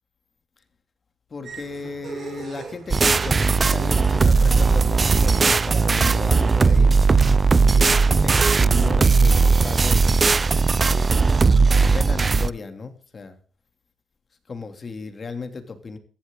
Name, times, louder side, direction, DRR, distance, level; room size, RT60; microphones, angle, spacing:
voice 1, 1.3-6.9 7.5-10.1 10.4-13.4 14.5-16.0, left 4 dB, 35° left, 8 dB, 2.9 m, -35 dB
sound 1, 1.4-9.3, right 6 dB, 60° right, 4.2 m, -41 dB
sound 2, 2.9-12.5, right 4 dB, 30° right, 0.6 m, -18 dB
15.0 x 13.0 x 3.9 m, 0.43 s
cardioid pair, 90°, 0 cm